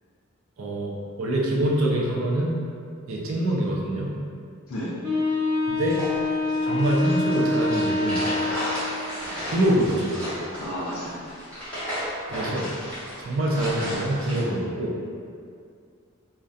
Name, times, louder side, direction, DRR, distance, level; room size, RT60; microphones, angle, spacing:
voice 1, 0.6-2.6 3.1-4.2 5.7-6.0 6.6-8.2 9.5-10.2 12.2-12.7 13.2-14.9, right 1 dB, 65° right, -3 dB, 0.4 m, -25 dB
Wind instrument woodwind instrument, 5.0-9.1, left 2 dB, 50° right, 0.9 m, -26 dB
sound 1, 5.8-14.4, equal, 5° left, 0.7 m, -34 dB
voice 2, 8.5-9.0 10.6-11.4, equal, 70° left, -8 dB, 0.4 m, -33 dB
2.3 x 2.1 x 2.5 m, 2.3 s
head